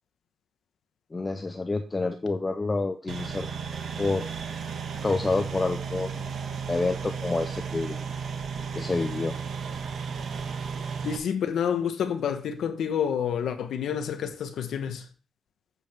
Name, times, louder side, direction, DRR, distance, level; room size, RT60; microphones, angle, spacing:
voice 1, 1.1-3.5 4.0-4.3 5.0-6.4 6.7-8.0 8.7-9.3, left 3 dB, 20° left, 0.6 m, -28 dB
sound 1, 3.1-11.2, right 6 dB, 60° right, 1.3 m, -34 dB
voice 2, 11.0-15.1, left 8 dB, 85° left, 1.1 m, -28 dB
8.5 x 7.9 x 3.6 m
wide cardioid pair, 180°, 0 cm